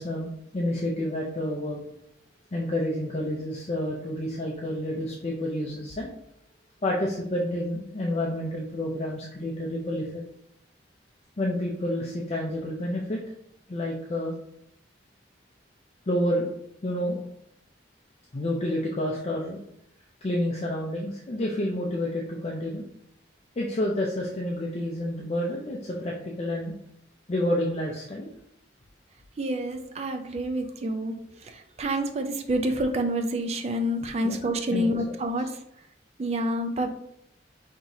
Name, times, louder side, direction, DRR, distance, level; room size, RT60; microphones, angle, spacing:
voice 1, 0.0-1.8 2.5-6.1 6.8-10.2 11.4-13.2 13.7-14.3 16.1-16.5 16.8-17.2 18.3-19.6 20.2-22.8 23.6-26.7 27.3-28.3 34.2-34.3 34.7-35.0, left 1 dB, 35° left, -2 dB, 0.5 m, -29 dB
voice 2, 29.4-31.1 31.4-35.5 36.2-36.9, right 1 dB, 35° right, 6 dB, 0.4 m, -28 dB
5.5 x 2.9 x 2.7 m, 0.74 s
head